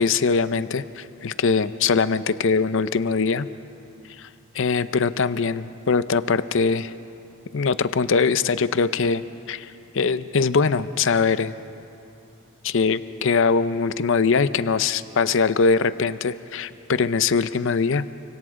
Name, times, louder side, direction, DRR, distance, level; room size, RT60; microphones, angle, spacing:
voice 1, 0.0-3.5 4.2-4.3 4.5-6.9 7.5-9.2 9.5-11.5 12.6-18.2, left 5 dB, 65° left, 14 dB, 0.6 m, -22 dB
29.5 x 25.5 x 3.7 m, 2.7 s
head